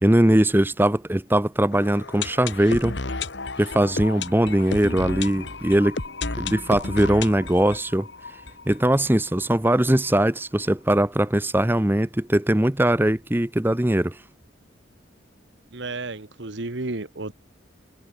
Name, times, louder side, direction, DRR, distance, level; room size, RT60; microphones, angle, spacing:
voice 1, 0.0-3.0 3.6-6.0 6.4-8.1 8.7-14.2, right 1 dB, 10° right, 0.7 m, -21 dB
sound 1, 1.7-9.5 9.8-9.9 10.0-10.1 10.7-10.8, left 3 dB, 65° left, 2.2 m, -33 dB
voice 2, 15.7-17.3, right 2 dB, 65° right, 1.4 m, -32 dB
head